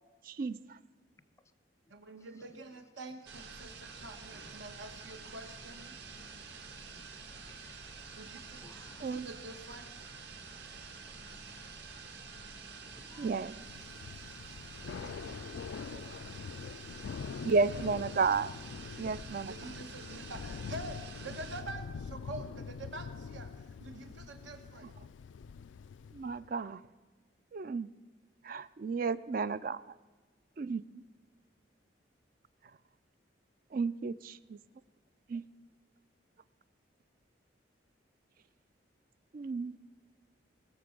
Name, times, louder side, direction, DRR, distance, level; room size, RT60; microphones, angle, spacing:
voice 1, 0.2-0.8 9.0-9.3 13.2-13.5 17.4-18.5 19.0-19.5 23.9-24.0 24.8-24.9 26.1-26.8 27.5-27.9 28.4-29.8 30.6-30.8 33.7-34.6 35.3-35.4 39.3-39.8, right 4 dB, 50° right, 16 dB, 0.4 m, -32 dB
voice 2, 1.9-5.9 8.1-8.6 9.1-9.9 14.9-16.5 19.5-24.9, right 2 dB, 90° right, 6 dB, 1.4 m, -47 dB
sound 1, 3.3-21.6, right 4 dB, 65° right, 1.4 m, -48 dB
voice 3, 8.6-9.1 11.1-11.6 11.9-12.2 12.9-13.3 14.3-14.7, left 2 dB, 15° left, 14 dB, 0.4 m, -60 dB
Thunder / Rain, 13.6-26.5, left 6 dB, 85° left, 0.3 m, -44 dB
20.0 x 6.9 x 6.7 m, 1.3 s
head